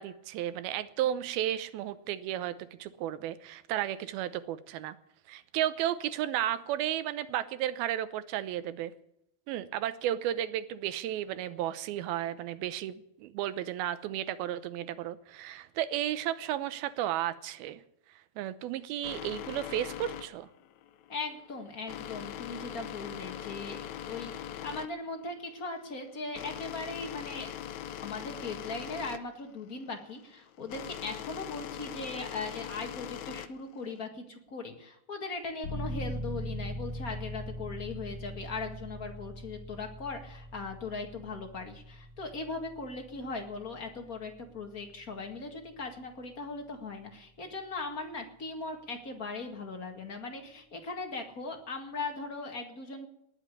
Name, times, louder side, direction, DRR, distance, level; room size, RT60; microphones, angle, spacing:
voice 1, 0.0-5.0 5.3-8.9 9.5-17.8 18.4-20.5, right 12 dB, 80° right, 14 dB, 2.7 m, -33 dB
sound 1, 19.0-34.1, left 11 dB, 85° left, 1.6 m, -42 dB
voice 2, 21.1-27.7 28.0-53.1, left 3 dB, 35° left, 4 dB, 1.4 m, -39 dB
sound 2, 35.6-46.2, equal, 55° left, 3.7 m, -42 dB
19.5 x 7.3 x 9.8 m, 0.76 s
omnidirectional pair, 4.4 m